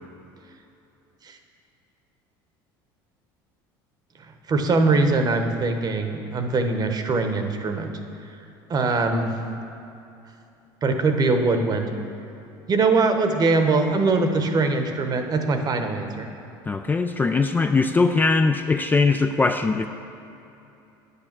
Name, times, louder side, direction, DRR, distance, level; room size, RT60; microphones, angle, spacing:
voice 1, 4.5-8.0 8.7-9.3 10.8-11.9 12.7-16.3, right 3 dB, 35° right, 6 dB, 1.0 m, -22 dB
voice 2, 16.7-19.9, left 4 dB, 15° left, 7 dB, 0.3 m, -21 dB
9.7 x 6.8 x 6.0 m, 2.8 s
supercardioid pair, 95°, 11 cm